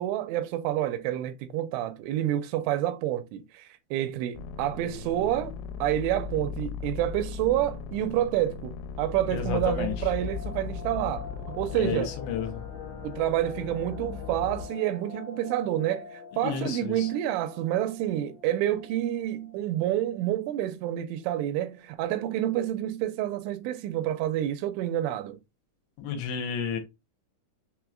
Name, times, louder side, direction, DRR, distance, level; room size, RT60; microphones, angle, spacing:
voice 1, 0.0-5.5 5.8-11.3 11.6-12.1 13.0-25.4, right 12 dB, 85° right, 3.0 m, -28 dB
sound 1, 4.3-12.8, left 6 dB, 90° left, 3.2 m, -38 dB
voice 2, 9.3-9.9 11.8-12.6 16.4-17.1 26.0-26.8, left 8 dB, 75° left, 3.0 m, -31 dB
sound 2, 9.4-20.2 20.5-20.6 20.9-21.1 21.6-22.0 22.5-22.6 22.8-23.3 23.6-23.7, left 5 dB, 55° left, 1.6 m, -45 dB
sound 3, 9.5-14.7, left 7 dB, 25° right, 0.5 m, -40 dB
7.0 x 3.1 x 2.4 m
omnidirectional pair, 5.5 m